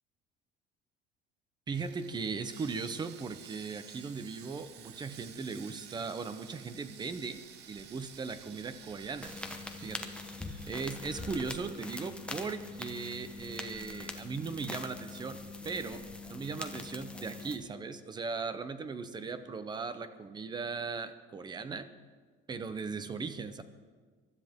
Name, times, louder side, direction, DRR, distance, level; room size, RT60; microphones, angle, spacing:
voice 1, 1.7-7.4 7.7-9.4 9.8-10.1 10.7-21.9 22.5-23.6, right 4 dB, 20° right, 11 dB, 0.8 m, -38 dB
Sawing, 1.7-16.0 16.2-16.4 16.9-17.0, right 9 dB, 55° right, 1.1 m, -54 dB
sound 1, 9.2-17.6, left 3 dB, 5° left, 1.0 m, -43 dB
23.5 x 12.5 x 3.6 m, 1.5 s
cardioid pair, 155°, 21 cm